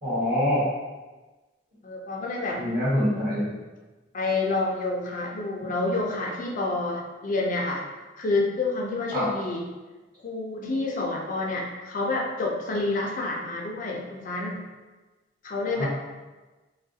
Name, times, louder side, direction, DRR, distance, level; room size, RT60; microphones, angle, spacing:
voice 1, 0.0-0.7 2.5-3.5 5.6-5.7 9.1-9.3 15.7-15.9, equal, 45° right, -10 dB, 1.1 m, -25 dB
voice 2, 1.8-2.6 4.1-7.8 8.2-9.6 10.2-14.6 15.4-15.9, left 2 dB, 45° left, -1 dB, 0.4 m, -28 dB
3.4 x 2.3 x 2.7 m, 1.2 s
head